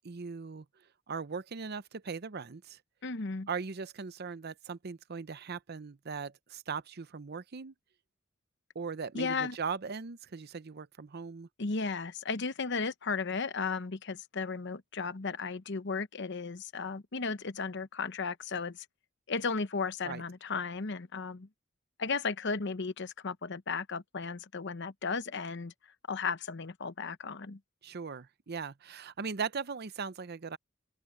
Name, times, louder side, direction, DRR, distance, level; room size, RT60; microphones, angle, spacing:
voice 1, 0.0-0.6 1.1-2.8 3.5-7.7 8.7-11.5 20.0-20.2 27.8-30.6, right 5 dB, 55° right, 0.7 m, -39 dB
voice 2, 3.0-3.5 9.1-9.6 11.6-18.8 19.3-21.5 22.0-25.7 26.1-27.6, left 4 dB, 60° left, 0.9 m, -35 dB
open air
head